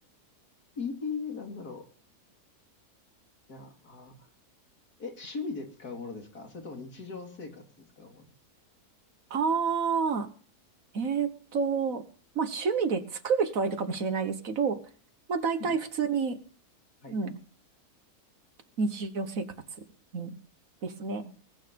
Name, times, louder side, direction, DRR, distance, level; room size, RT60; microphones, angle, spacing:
voice 1, 0.7-1.8 3.5-4.3 5.0-8.3 15.6-15.7 17.0-17.2, left 4 dB, 85° left, 2 dB, 3.3 m, -39 dB
voice 2, 9.3-10.3 10.9-12.0 12.4-14.8 15.3-16.4 17.1-17.4 18.8-19.5 19.8-19.9 20.1-20.4 20.8-21.3, right 5 dB, 65° right, 9 dB, 1.8 m, -29 dB
20.0 x 9.0 x 5.3 m, 0.40 s
omnidirectional pair, 1.6 m